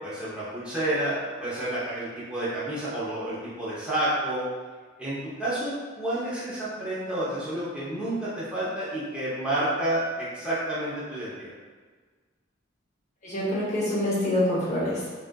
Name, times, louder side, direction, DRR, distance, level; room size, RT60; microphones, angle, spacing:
voice 1, 0.0-4.4 5.0-11.5, right 1 dB, 5° right, -10 dB, 0.7 m, -30 dB
voice 2, 13.2-15.1, left 1 dB, 35° left, -7 dB, 0.8 m, -26 dB
3.6 x 2.3 x 2.2 m, 1.5 s
head